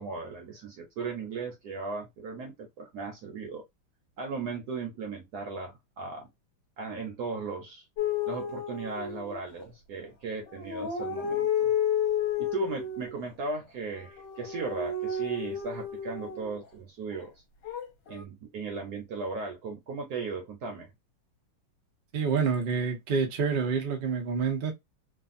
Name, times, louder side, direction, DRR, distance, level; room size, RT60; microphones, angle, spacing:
voice 1, 0.0-3.6 4.2-6.3 6.8-7.8 8.3-11.7 12.4-17.3 18.1-20.9, right 4 dB, 60° right, 1.1 m, -37 dB
sound 1, 8.0-9.7 10.5-13.1 14.0-16.6 17.6-18.2, left 7 dB, 65° left, 1.3 m, -31 dB
voice 2, 22.1-24.7, right 5 dB, 80° right, 0.4 m, -27 dB
3.3 x 2.4 x 2.5 m
omnidirectional pair, 2.3 m